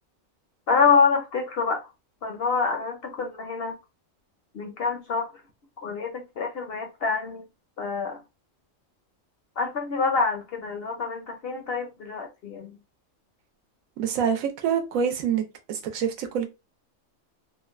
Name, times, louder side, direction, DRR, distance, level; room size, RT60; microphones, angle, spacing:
voice 1, 0.7-1.9 2.2-3.7 4.5-5.3 5.8-7.4 7.8-8.2 9.6-12.8, left 5 dB, 65° left, 0.6 m, -26 dB
voice 2, 14.0-16.5, right 7 dB, 90° right, 1.0 m, -26 dB
3.1 x 2.1 x 2.3 m
omnidirectional pair, 1.4 m